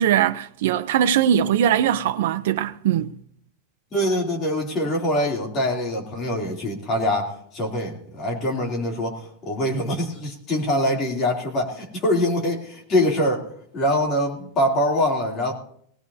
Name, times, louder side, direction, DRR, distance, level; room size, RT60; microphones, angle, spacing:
voice 1, 0.0-3.1, right 10 dB, 75° right, 0.6 m, -20 dB
voice 2, 3.9-13.5 13.7-15.5, left 1 dB, 25° left, 3.1 m, -24 dB
19.0 x 18.0 x 2.8 m
supercardioid pair, 170°, 0 cm